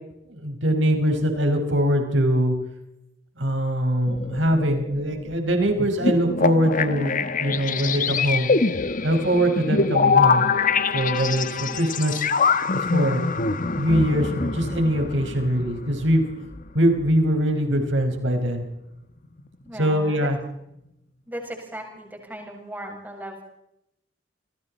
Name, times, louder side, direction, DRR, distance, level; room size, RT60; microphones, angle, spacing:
voice 1, 0.2-2.6 3.4-8.5 9.0-10.4 10.9-12.3 12.7-13.3 13.8-16.3 16.7-18.6 19.8-20.4, equal, 70° right, 4 dB, 5.2 m, -22 dB
sound 1, 4.1-16.7 17.0-17.2 18.7-18.8 19.2-19.5 19.7-19.9, left 5 dB, 45° left, 1.2 m, -24 dB
voice 2, 19.6-20.3 21.3-23.4, right 1 dB, 10° right, 0 dB, 7.3 m, -37 dB
29.5 x 22.5 x 4.3 m, 0.83 s
head